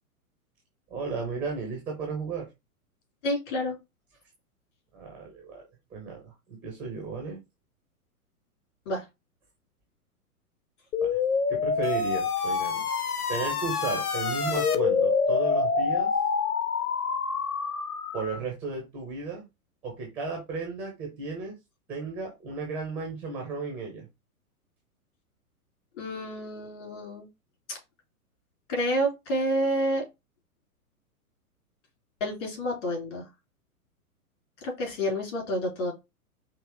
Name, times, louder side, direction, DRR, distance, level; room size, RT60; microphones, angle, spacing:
voice 1, 0.9-2.5 4.9-5.6 5.9-7.4 11.0-11.2 11.5-12.9 13.3-16.1 18.1-19.5 19.8-21.5 21.9-24.1, right 4 dB, 5° right, 0 dB, 0.4 m, -34 dB
voice 2, 3.2-3.8 8.8-9.0 26.0-27.3 27.7-27.8 28.7-30.0 32.2-33.3 34.6-35.9, equal, 50° left, 0 dB, 3.2 m, -29 dB
sound 1, 10.9-18.4, left 5 dB, 75° left, 0.9 m, -27 dB
5.2 x 2.8 x 3.1 m, 0.23 s
figure-of-eight pair, 110°, 45 cm